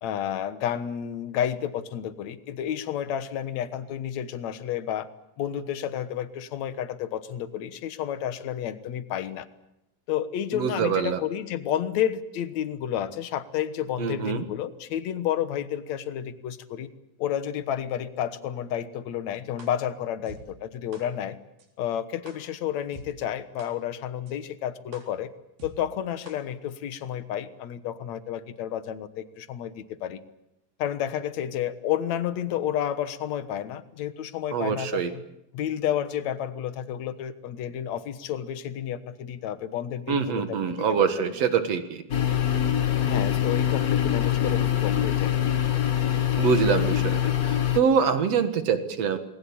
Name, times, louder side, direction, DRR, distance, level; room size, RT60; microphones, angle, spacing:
voice 1, 0.0-5.1 5.4-9.5 10.1-16.9 17.2-21.4 21.8-25.3 25.6-30.2 30.8-35.2 35.5-41.4 43.0-45.3, left 10 dB, 60° left, 12 dB, 2.3 m, -31 dB
voice 2, 10.5-11.2 14.0-14.4 34.5-35.1 40.1-42.0 46.4-49.2, right 7 dB, 55° right, 9 dB, 2.5 m, -25 dB
sound 1, 19.6-19.7 20.3-20.4 20.9-21.0 21.6-21.7 22.3-22.4 22.9-23.0 23.6-23.7 24.3-24.4 24.9-25.0 25.6-25.7 26.3-26.4 26.9-27.0, right 2 dB, 90° right, 5.6 m, -44 dB
sound 2, 42.1-47.8, left 10 dB, 90° left, 0.8 m, -24 dB
28.0 x 20.5 x 8.7 m, 0.86 s
omnidirectional pair, 4.0 m